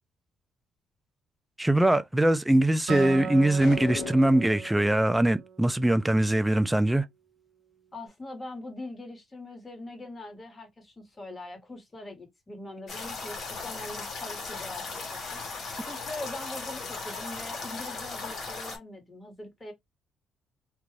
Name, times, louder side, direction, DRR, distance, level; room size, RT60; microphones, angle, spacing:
voice 1, 1.6-7.0, right 1 dB, 10° right, 0.3 m, -22 dB
Acoustic guitar, 2.9-6.3, right 6 dB, 80° right, 0.8 m, -36 dB
sound 1, 3.6-4.6, left 9 dB, 80° left, 0.3 m, -38 dB
voice 2, 7.9-19.7, left 2 dB, 25° left, 1.3 m, -42 dB
sound 2, 12.9-18.8, left 4 dB, 55° left, 1.0 m, -37 dB
2.5 x 2.3 x 3.1 m
cardioid pair, 90°, 0 cm